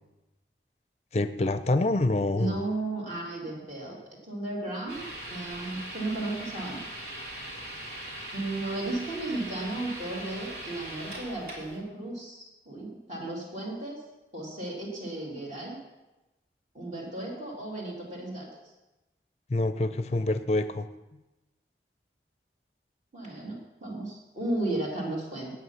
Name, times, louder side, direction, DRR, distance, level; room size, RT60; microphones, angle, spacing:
voice 1, 1.1-2.6 19.5-20.9, left 2 dB, 35° left, 11 dB, 0.5 m, -26 dB
voice 2, 2.4-4.0 4.2-5.0 5.3-6.8 8.3-14.0 14.3-15.8 16.7-18.5 23.1-25.5, right 2 dB, 40° right, -3 dB, 3.0 m, -34 dB
sound 1, 4.9-11.8, right 1 dB, 60° right, 3.1 m, -40 dB
9.6 x 8.7 x 5.8 m, 1.0 s
head